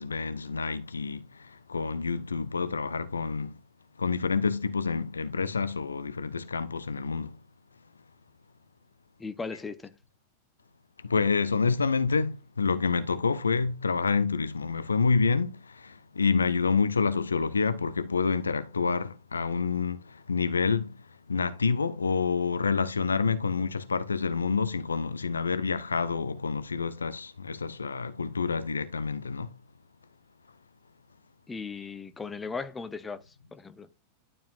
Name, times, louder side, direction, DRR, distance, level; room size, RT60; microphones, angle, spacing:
voice 1, 0.0-3.6 4.0-7.4 11.0-21.0 21.3-29.6, left 5 dB, 75° left, 0.7 m, -28 dB
voice 2, 9.2-9.9 31.5-33.2 33.5-33.9, left 4 dB, 15° left, 0.8 m, -37 dB
12.0 x 5.2 x 2.5 m
figure-of-eight pair, 90°, 0 cm